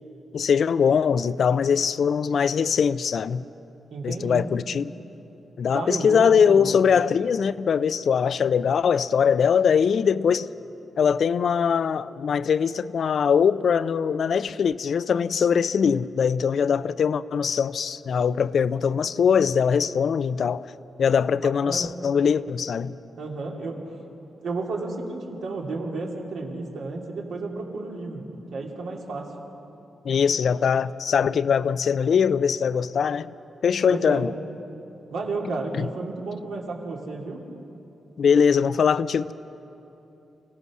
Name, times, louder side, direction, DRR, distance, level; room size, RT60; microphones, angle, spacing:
voice 1, 0.3-3.4 4.0-4.9 5.6-10.5 11.0-20.7 21.0-23.0 30.0-33.3 33.6-34.3 35.7-35.9 38.2-39.3, left 7 dB, 65° left, 0.5 m, -22 dB
voice 2, 3.9-4.4 5.7-6.8 21.6-21.9 23.2-23.8 24.4-28.2 28.5-29.3 33.9-34.2 35.1-37.4, right 3 dB, 90° right, 2.9 m, -32 dB
27.0 x 17.5 x 6.3 m
cardioid pair, 115°, 0 cm